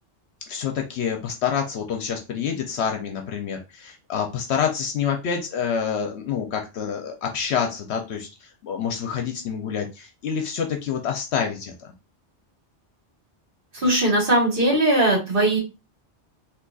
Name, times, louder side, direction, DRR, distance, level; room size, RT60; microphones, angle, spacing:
voice 1, 0.5-11.9, left 7 dB, 70° left, 3 dB, 0.9 m, -27 dB
voice 2, 13.7-15.6, right 1 dB, 55° right, -2 dB, 1.5 m, -19 dB
3.8 x 2.8 x 2.3 m, 0.28 s
omnidirectional pair, 1.2 m